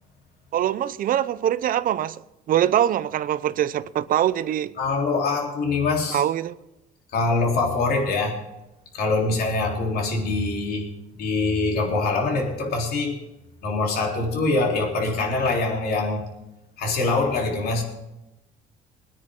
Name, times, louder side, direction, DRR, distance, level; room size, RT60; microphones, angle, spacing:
voice 1, 0.5-2.2 2.5-4.7 6.1-6.5, right 11 dB, 55° right, 0.7 m, -23 dB
voice 2, 4.8-6.2 7.1-8.5 8.9-10.9 11.2-13.2 13.6-16.3 16.8-17.8, left 3 dB, 65° left, 3.7 m, -24 dB
21.5 x 9.7 x 3.8 m
cardioid pair, 110°, 17 cm